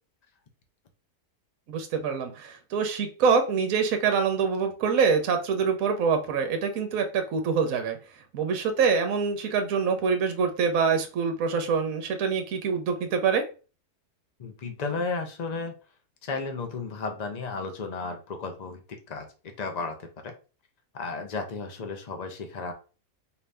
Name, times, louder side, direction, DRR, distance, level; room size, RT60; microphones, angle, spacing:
voice 1, 1.7-8.0 8.3-13.4, right 5 dB, 65° right, 6 dB, 1.1 m, -25 dB
voice 2, 14.4-15.8 16.2-18.8 19.1-19.3 19.6-20.3 20.9-22.7, left 4 dB, 55° left, 5 dB, 0.4 m, -33 dB
4.3 x 2.7 x 3.4 m, 0.34 s
omnidirectional pair, 1.6 m